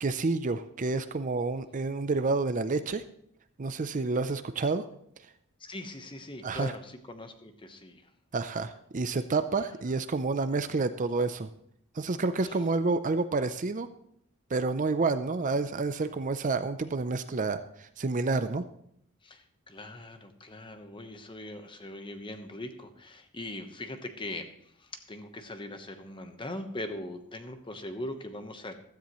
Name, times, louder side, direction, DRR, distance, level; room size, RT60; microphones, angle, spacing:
voice 1, 0.0-3.0 3.6-4.8 6.4-6.7 8.3-11.5 12.0-13.9 14.5-18.6, right 3 dB, 35° right, 11 dB, 0.5 m, -29 dB
voice 2, 5.6-8.1 12.4-12.6 19.2-24.5 24.8-28.7, left 1 dB, 20° left, 7 dB, 1.1 m, -41 dB
15.5 x 13.0 x 3.1 m, 0.71 s
head